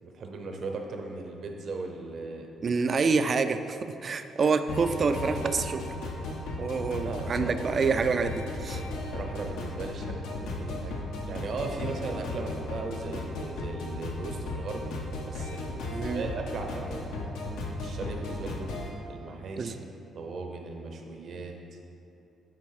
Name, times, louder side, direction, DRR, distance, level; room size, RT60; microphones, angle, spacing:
voice 1, 0.0-2.8 7.0-7.5 9.1-11.0 11.3-17.1 17.8-18.7 19.1-19.8 20.1-21.5, right 3 dB, 60° right, 3 dB, 0.8 m, -38 dB
voice 2, 2.6-5.8 6.6-8.8 15.9-16.3 19.6-19.7, right 4 dB, 45° right, 9 dB, 0.4 m, -27 dB
sound 1, 4.7-18.9, left 2 dB, 90° left, 0.9 m, -35 dB
8.6 x 3.5 x 4.8 m, 2.7 s
cardioid pair, 90°, 0 cm